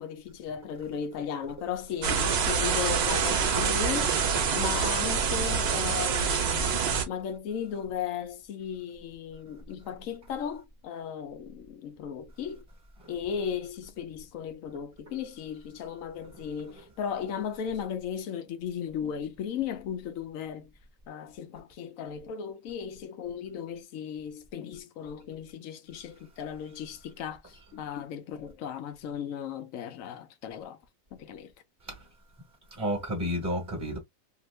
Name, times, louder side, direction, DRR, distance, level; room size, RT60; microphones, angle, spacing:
voice 1, 0.0-4.2 4.5-6.7 7.1-12.6 13.1-20.7 21.1-30.8 31.1-31.5, left 8 dB, 70° left, 1.0 m, -36 dB
sound 1, 2.0-7.0, right 6 dB, 55° right, 0.8 m, -26 dB
voice 2, 32.7-34.0, equal, 15° right, 0.8 m, -31 dB
2.8 x 2.5 x 3.1 m
omnidirectional pair, 1.5 m